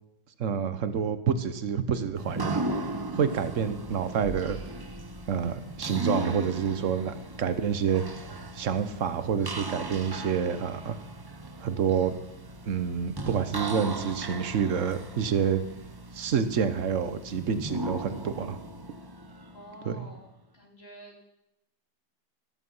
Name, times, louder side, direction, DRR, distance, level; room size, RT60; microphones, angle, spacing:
voice 1, 0.4-2.7 3.1-4.6 5.3-8.0 8.5-11.0 11.6-12.1 12.6-15.6 16.1-18.6 19.9-20.0, right 7 dB, 50° right, 11 dB, 1.2 m, -28 dB
sound 1, 2.1-20.0, right 2 dB, 30° right, 0.4 m, -37 dB
voice 2, 19.5-20.3 20.5-21.2, equal, 35° left, -1 dB, 3.6 m, -48 dB
14.5 x 14.0 x 5.6 m, 0.89 s
omnidirectional pair, 1.9 m